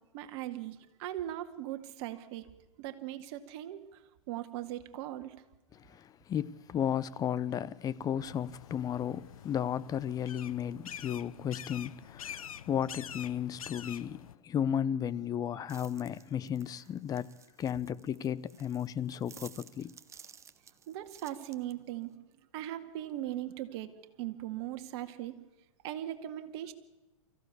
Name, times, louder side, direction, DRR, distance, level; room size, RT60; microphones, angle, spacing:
voice 1, 0.1-2.5 2.8-4.0 4.3-5.4 20.9-22.1 22.5-25.3 25.8-26.7, right 13 dB, 50° right, 2.1 m, -39 dB
voice 2, 5.8-20.0, left 9 dB, 20° left, 0.7 m, -34 dB
sound 1, 8.2-14.3, left 9 dB, 80° left, 0.8 m, -46 dB
sound 2, 15.7-22.1, right 7 dB, 15° right, 1.0 m, -56 dB
24.0 x 15.5 x 8.4 m
hypercardioid pair, 120°, 18 cm